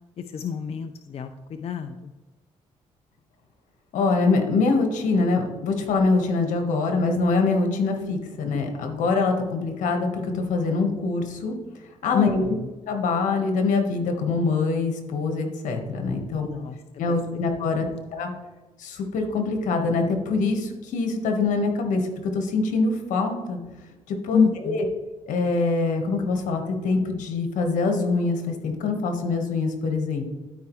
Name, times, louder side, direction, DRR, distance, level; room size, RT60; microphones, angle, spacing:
voice 1, 0.2-2.1 12.1-12.7 16.4-18.0 24.3-24.8, left 7 dB, 50° left, 7 dB, 0.5 m, -28 dB
voice 2, 3.9-11.6 12.0-12.4 12.9-16.5 17.0-18.3 18.8-23.6 24.1-24.8 25.3-30.2, left 3 dB, 80° left, 4 dB, 1.5 m, -24 dB
12.5 x 4.7 x 3.2 m, 1.2 s
supercardioid pair, 70°, 13 cm